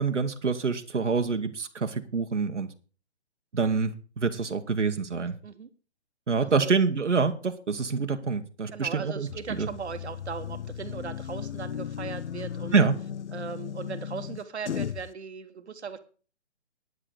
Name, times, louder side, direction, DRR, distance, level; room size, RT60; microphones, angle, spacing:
voice 1, 0.0-2.7 3.5-5.4 6.3-9.3 9.6-9.7 12.7-12.9, right 5 dB, 90° right, 6 dB, 1.3 m, -26 dB
voice 2, 8.7-12.8 13.3-16.0, right 6 dB, 70° right, 9 dB, 1.4 m, -38 dB
sound 1, 9.3-15.1, left 9 dB, 75° left, 0.6 m, -36 dB
9.7 x 7.9 x 6.6 m, 0.38 s
figure-of-eight pair, 145°, 35 cm